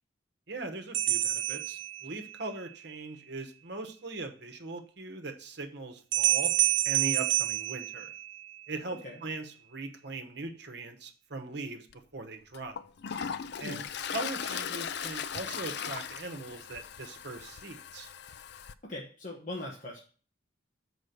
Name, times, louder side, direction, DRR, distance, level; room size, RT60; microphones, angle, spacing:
voice 1, 0.5-6.5 6.8-8.1 8.7-11.9 12.1-12.8 13.6-13.9 14.1-18.1, right 3 dB, 60° right, 6 dB, 1.2 m, -40 dB
sound 1, 0.9-2.5 6.1-8.6, right 13 dB, 80° right, 0.8 m, -28 dB
Toilet flush, 11.9-12.0 12.5-18.7, left 7 dB, 60° left, 0.4 m, -38 dB
voice 2, 18.8-20.0, left 1 dB, 40° left, -2 dB, 1.2 m, -40 dB
6.3 x 4.9 x 6.8 m, 0.40 s
head